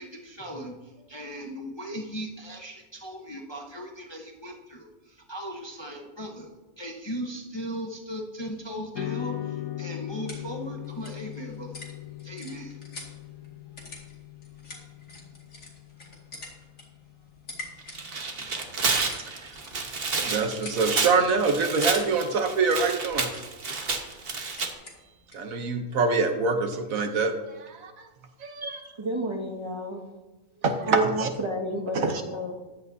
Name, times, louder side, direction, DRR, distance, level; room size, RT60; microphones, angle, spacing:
voice 1, 0.0-11.8 12.2-12.8, equal, 20° left, 0 dB, 0.9 m, -38 dB
sound 1, 8.9-17.5, left 13 dB, 80° left, 1.2 m, -39 dB
sound 2, 10.0-25.5, left 2 dB, 65° left, 2.5 m, -48 dB
Tearing, 17.8-24.7, right 4 dB, 45° right, 1.3 m, -30 dB
voice 2, 19.1-19.5 20.2-23.3 25.3-28.1 28.4-28.7 30.6-31.3 31.9-32.2, right 4 dB, 70° right, 6 dB, 1.3 m, -25 dB
voice 3, 28.6-30.0 30.9-32.5, right 1 dB, 20° right, -1 dB, 1.6 m, -31 dB
14.5 x 11.0 x 2.7 m, 1.2 s
omnidirectional pair, 1.5 m